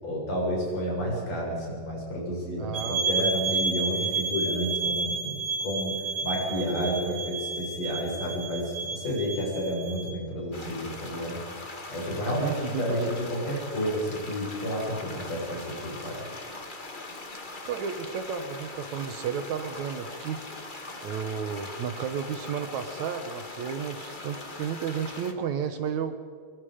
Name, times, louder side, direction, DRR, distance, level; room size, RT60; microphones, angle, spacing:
voice 1, 0.0-5.4 5.6-11.4 11.9-16.2, equal, 70° left, -3 dB, 8.9 m, -30 dB
voice 2, 2.6-3.3 12.4-13.1 17.7-20.4 21.0-26.2, right 7 dB, 65° right, 8 dB, 2.1 m, -32 dB
sound 1, 2.7-10.1, right 4 dB, 25° right, 3.1 m, -31 dB
sound 2, 10.5-25.3, left 2 dB, 30° left, 0.9 m, -41 dB
24.0 x 24.0 x 5.0 m, 2.1 s
omnidirectional pair, 3.9 m